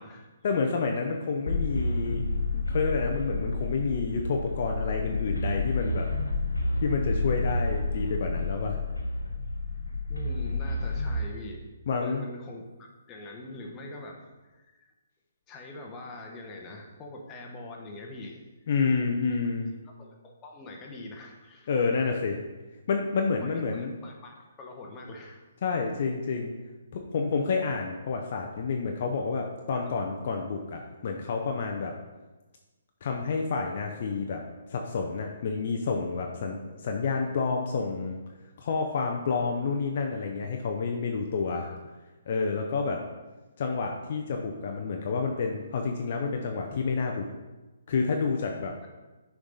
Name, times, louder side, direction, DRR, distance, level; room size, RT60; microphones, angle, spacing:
voice 1, 0.4-2.2 2.5-6.1 6.8-8.8 11.9-12.2 18.7-19.7 21.7-22.4 22.9-23.9 25.6-26.5 26.9-31.9 33.0-34.4 34.7-38.2 38.6-41.7 42.3-43.0 43.6-47.3 47.9-48.7, left 4 dB, 45° left, 2 dB, 0.6 m, -29 dB
sound 1, 1.5-11.3, left 2 dB, 85° left, 1.1 m, -30 dB
voice 2, 10.1-14.9 15.5-18.4 19.8-21.9 23.4-25.4 29.7-29.9 41.5-41.8, left 2 dB, 20° left, 0 dB, 1.0 m, -43 dB
6.4 x 4.7 x 3.9 m, 1.2 s
figure-of-eight pair, 135°, 0 cm